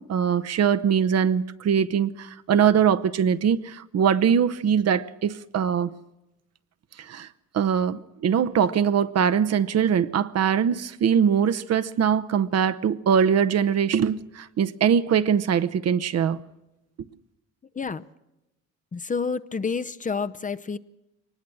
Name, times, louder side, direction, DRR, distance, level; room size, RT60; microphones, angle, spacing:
voice 1, 0.0-5.9 7.1-7.3 7.5-16.4, right 7 dB, 55° right, 0.9 m, -22 dB
voice 2, 18.9-20.8, left 5 dB, 25° left, 0.7 m, -29 dB
22.5 x 19.5 x 6.2 m
cardioid pair, 90°, 30 cm